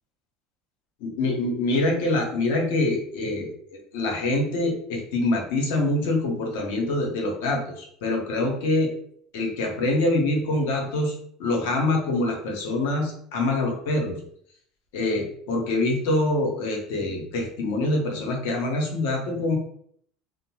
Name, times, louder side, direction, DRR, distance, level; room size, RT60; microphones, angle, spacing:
voice 1, 1.0-3.5 3.9-8.9 9.3-11.1 11.4-14.2 14.9-19.6, left 2 dB, 75° left, 1 dB, 0.9 m, -25 dB
2.9 x 2.1 x 3.0 m, 0.65 s
hypercardioid pair, 75°, 0 cm